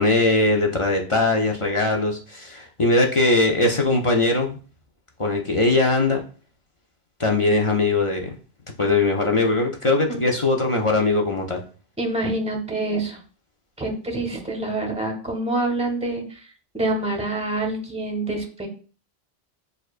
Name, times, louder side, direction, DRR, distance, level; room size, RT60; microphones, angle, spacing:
voice 1, 0.0-4.6 5.2-6.2 7.2-8.3 8.8-11.6, left 2 dB, 45° left, 1 dB, 0.4 m, -20 dB
voice 2, 12.0-13.2 13.8-16.4 16.7-18.7, right 2 dB, 5° right, 3 dB, 0.7 m, -26 dB
6.5 x 2.4 x 2.4 m, 0.39 s
omnidirectional pair, 1.1 m